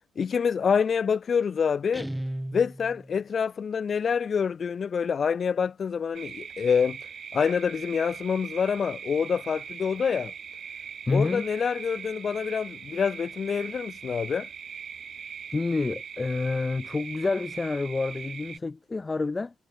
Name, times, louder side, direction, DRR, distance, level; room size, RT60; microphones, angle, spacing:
voice 1, 0.2-2.1 2.5-7.0 7.3-10.3 11.1-14.5, left 6 dB, 40° left, 6.6 m, -26 dB
Guitar, 1.9-3.2, right 1 dB, 5° right, 2.7 m, -35 dB
sound 1, 6.1-18.6, right 7 dB, 45° right, 4.7 m, -41 dB
voice 2, 11.1-11.5 15.5-19.5, left 3 dB, 20° left, 3.0 m, -28 dB
cardioid pair, 145°, 0 cm